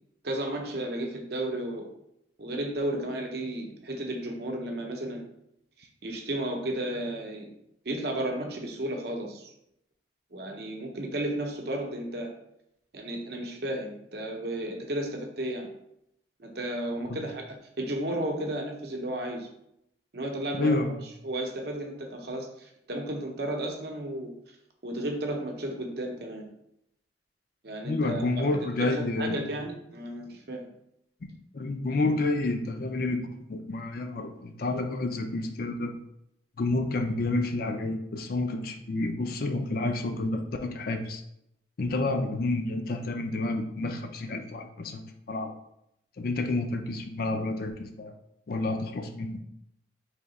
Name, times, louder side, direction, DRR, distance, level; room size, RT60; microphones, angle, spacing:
voice 1, 0.2-1.9 2.4-5.3 5.8-7.5 7.8-9.5 10.3-12.3 12.9-15.7 16.4-19.5 20.1-20.8 21.2-24.3 24.8-26.5 27.6-28.5 28.8-30.7, right 1 dB, 55° right, 2 dB, 0.7 m, -33 dB
voice 2, 20.6-21.0 27.8-29.4 31.5-35.9 36.6-41.2 41.8-45.5 46.2-48.1 48.5-49.4, left 2 dB, 50° left, 5 dB, 0.4 m, -29 dB
3.4 x 2.8 x 4.0 m, 0.78 s
head